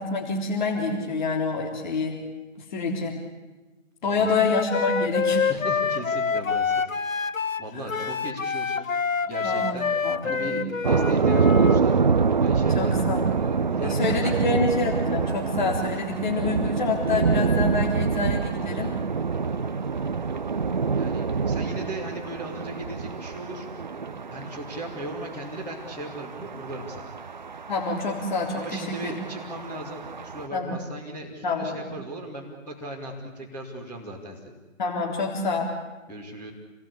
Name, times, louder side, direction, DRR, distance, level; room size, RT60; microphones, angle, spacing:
voice 1, 0.0-2.2 2.7-3.2 4.0-5.4 7.7-7.9 9.4-10.6 12.7-13.2 13.8-18.9 27.7-29.2 30.5-30.8 31.4-31.9 34.8-35.7, left 3 dB, 35° left, -1 dB, 3.7 m, -27 dB
voice 2, 4.0-4.4 5.5-6.7 7.6-8.9 9.3-9.9 10.2-12.0 12.4-13.0 13.4-14.4 21.0-23.7 23.9-27.1 28.5-34.5 36.1-36.5, right 1 dB, 5° left, -5 dB, 2.4 m, -37 dB
Wind instrument woodwind instrument, 4.2-11.8, left 5 dB, 85° left, 0.9 m, -27 dB
sound 1, 10.8-30.5, right 5 dB, 35° right, 0.8 m, -26 dB
29.0 x 19.5 x 8.5 m, 1.2 s
figure-of-eight pair, 150°, 39 cm